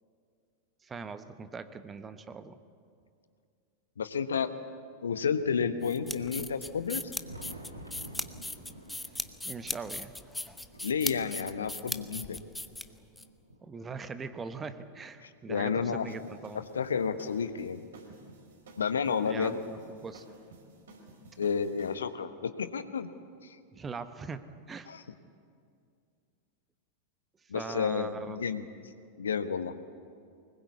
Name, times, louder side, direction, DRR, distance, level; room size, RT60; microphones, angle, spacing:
voice 1, 0.8-2.6 9.4-10.1 13.6-16.6 19.2-20.2 23.7-24.9 27.5-28.4, right 4 dB, 20° right, 11 dB, 1.1 m, -41 dB
voice 2, 4.0-4.5 5.0-7.0 10.8-12.4 15.2-16.1 16.5-17.8 18.8-19.5 21.4-23.1 23.4-23.6 24.9-25.0 27.5-28.6 29.2-29.7, left 6 dB, 70° left, 11 dB, 1.1 m, -31 dB
sound 1, 5.8-13.2, left 2 dB, 5° left, 0.9 m, -38 dB
Thunder, 6.7-15.3 15.9-17.7 18.8-18.9 19.5-19.6 21.4-21.5 22.9-23.0 24.6-24.7, right 1 dB, 85° right, 2.3 m, -52 dB
sound 2, 16.0-21.9, right 2 dB, 65° right, 4.8 m, -53 dB
24.0 x 21.0 x 8.4 m, 2.3 s
figure-of-eight pair, 90°, 0 cm